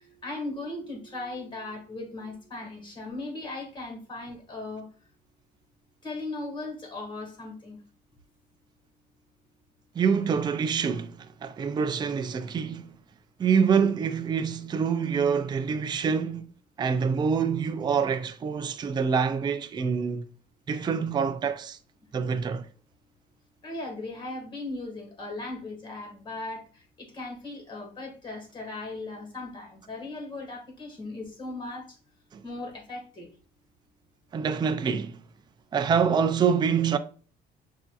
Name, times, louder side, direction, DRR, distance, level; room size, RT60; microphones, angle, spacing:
voice 1, 0.0-4.9 6.0-7.8 23.6-26.6 27.0-31.9 32.4-33.3, left 2 dB, 30° left, 1.8 m, -38 dB
voice 2, 10.0-12.9 13.4-16.5 16.8-20.2 20.7-21.8 22.1-22.7 32.3-32.4 34.3-35.2 35.7-37.0, right 6 dB, 25° right, 0.4 m, -26 dB
6.8 x 2.7 x 2.3 m
cardioid pair, 110°, 17 cm